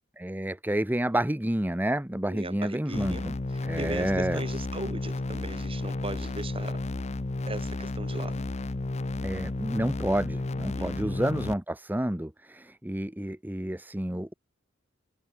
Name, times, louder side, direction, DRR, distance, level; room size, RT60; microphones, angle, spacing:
voice 1, 0.2-3.3 3.6-4.4 9.2-14.3, right 1 dB, 10° right, 1.0 m, -29 dB
voice 2, 2.3-3.3 3.5-6.8 7.5-8.5 10.7-11.3, right 2 dB, 30° right, 7.4 m, -38 dB
sound 1, 2.9-11.5, left 2 dB, 35° left, 0.7 m, -32 dB
head